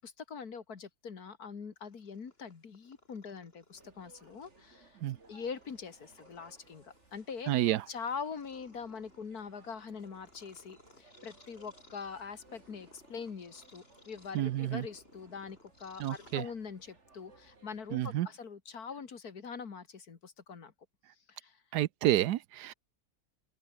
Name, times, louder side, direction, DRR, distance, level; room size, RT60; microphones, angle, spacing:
voice 1, 0.0-5.0 5.3-7.5 7.9-20.7 21.3-21.6, left 5 dB, 70° left, 2.5 m, -43 dB
Purr, 1.8-16.9, left 2 dB, 35° left, 4.8 m, -63 dB
sound 1, 3.7-18.1, right 3 dB, 45° right, 3.2 m, -63 dB
voice 2, 7.5-7.8 14.3-14.8 16.0-16.4 17.9-18.3 21.7-22.7, right 13 dB, 80° right, 1.3 m, -29 dB
open air
omnidirectional pair, 1.7 m